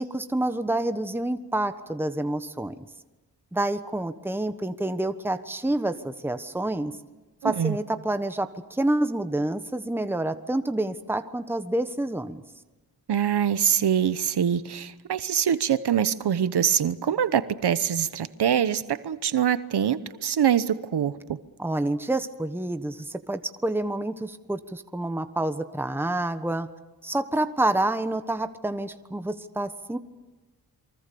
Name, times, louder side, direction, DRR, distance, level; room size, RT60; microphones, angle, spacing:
voice 1, 0.0-2.8 3.5-6.9 7.4-12.4 21.6-26.7 27.0-30.0, right 1 dB, 5° right, 9 dB, 1.2 m, -28 dB
voice 2, 7.4-7.8 13.1-21.4, right 9 dB, 80° right, 13 dB, 1.0 m, -24 dB
28.5 x 24.0 x 7.0 m, 1.1 s
cardioid pair, 75°, 39 cm